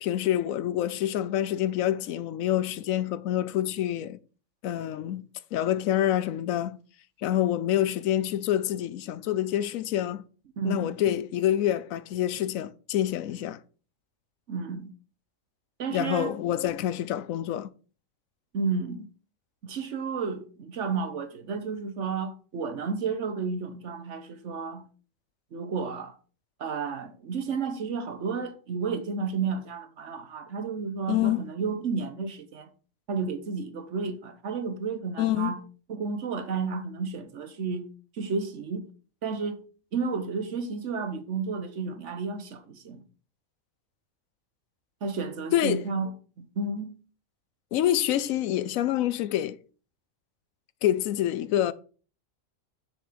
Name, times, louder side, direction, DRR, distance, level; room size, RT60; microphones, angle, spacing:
voice 1, 0.0-4.2 4.6-5.3 5.5-6.8 7.2-10.2 10.6-13.6 15.9-17.7 31.1-31.5 35.2-35.5 45.5-45.8 47.7-49.6 50.8-51.7, left 12 dB, 85° left, 1.0 m, -27 dB
voice 2, 10.6-10.9 14.5-14.9 15.8-16.4 18.5-19.1 19.6-24.8 25.5-26.1 26.6-32.7 33.1-35.6 35.9-37.9 38.2-38.9 39.2-39.6 39.9-43.0 45.0-46.1 46.4-46.9, right 5 dB, 65° right, 1.2 m, -32 dB
7.1 x 6.5 x 5.0 m
omnidirectional pair, 1.4 m